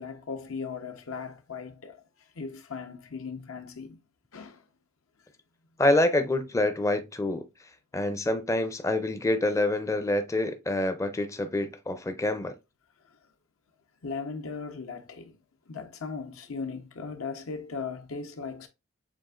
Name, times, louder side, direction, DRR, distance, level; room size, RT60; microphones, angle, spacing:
voice 1, 0.0-4.0 4.3-4.7 13.0-13.3 14.0-15.4 15.7-18.7, left 5 dB, 85° left, 0.8 m, -38 dB
voice 2, 5.8-7.5 7.9-12.5, left 1 dB, 15° left, 0.4 m, -26 dB
7.2 x 2.5 x 2.4 m
head